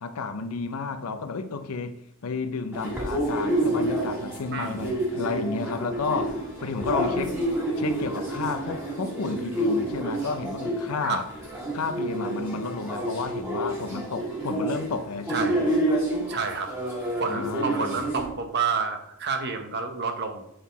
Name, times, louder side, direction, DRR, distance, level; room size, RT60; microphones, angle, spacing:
voice 1, 0.0-7.3 7.8-11.3 11.7-15.7 17.3-17.9, left 4 dB, 85° left, 0.6 m, -32 dB
sound 1, 2.7-18.2, right 1 dB, 10° right, 1.8 m, -29 dB
voice 2, 4.5-4.9 11.0-11.2 15.3-15.6 16.3-16.7 17.2-20.4, right 5 dB, 50° right, 0.9 m, -29 dB
7.8 x 4.0 x 4.1 m
head